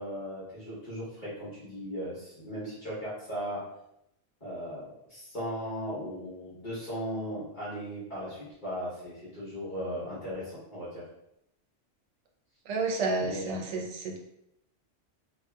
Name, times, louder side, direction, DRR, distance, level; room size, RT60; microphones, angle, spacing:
voice 1, 0.0-3.6 4.4-11.0 13.2-13.5, equal, 45° left, -10 dB, 1.0 m, -37 dB
voice 2, 12.7-14.2, right 3 dB, 75° right, 1 dB, 0.9 m, -30 dB
2.7 x 2.3 x 2.2 m, 0.80 s
omnidirectional pair, 1.2 m